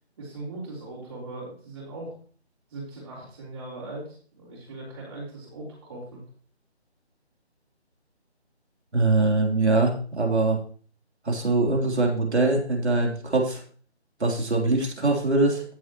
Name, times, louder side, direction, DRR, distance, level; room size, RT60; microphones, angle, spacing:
voice 1, 0.2-2.1 2.7-6.2, right 2 dB, 30° right, -7 dB, 3.4 m, -39 dB
voice 2, 8.9-10.6 11.2-13.6 14.2-15.6, right 2 dB, 75° right, 1 dB, 3.4 m, -23 dB
14.0 x 7.4 x 3.0 m, 0.42 s
figure-of-eight pair, 165°, 34 cm